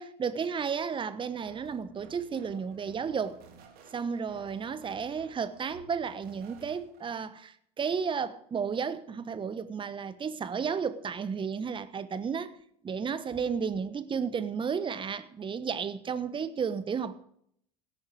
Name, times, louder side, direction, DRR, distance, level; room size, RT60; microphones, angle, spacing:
voice 1, 0.0-3.4 3.9-12.5 12.8-17.1, right 6 dB, 25° right, 1.2 m, -33 dB
sound 1, 1.4-7.1, right 5 dB, 45° right, 3.5 m, -55 dB
17.0 x 10.5 x 5.1 m
hypercardioid pair, 75°, 21 cm